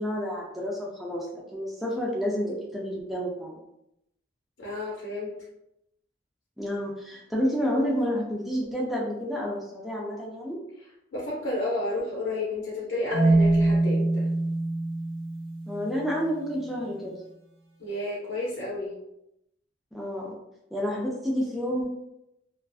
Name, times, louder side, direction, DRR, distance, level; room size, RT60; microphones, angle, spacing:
voice 1, 0.0-3.6 6.6-10.6 15.7-17.1 19.9-20.3 20.7-21.9, equal, ahead, -5 dB, 0.4 m, -29 dB
voice 2, 4.6-5.3 11.1-14.3 17.8-18.9, left 2 dB, 85° left, -5 dB, 0.6 m, -31 dB
Marimba xylophone, 13.1-16.1, right 2 dB, 65° right, 1.0 m, -24 dB
2.4 x 2.3 x 2.3 m, 0.83 s
head